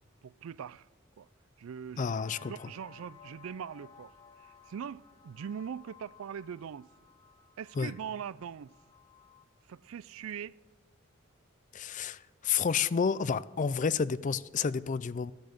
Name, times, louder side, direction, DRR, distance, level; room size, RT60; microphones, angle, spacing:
voice 1, 0.2-0.9 1.2-1.3 1.6-2.1 2.4-4.1 4.4-6.9 7.6-8.7 9.7-10.6, right 8 dB, 75° right, 0.4 m, -41 dB
voice 2, 2.0-2.5 7.8-7.9 11.7-15.3, left 6 dB, 35° left, 0.4 m, -30 dB
sound 1, 2.1-9.4, left 6 dB, 20° left, 0.8 m, -57 dB
13.5 x 10.5 x 6.6 m
head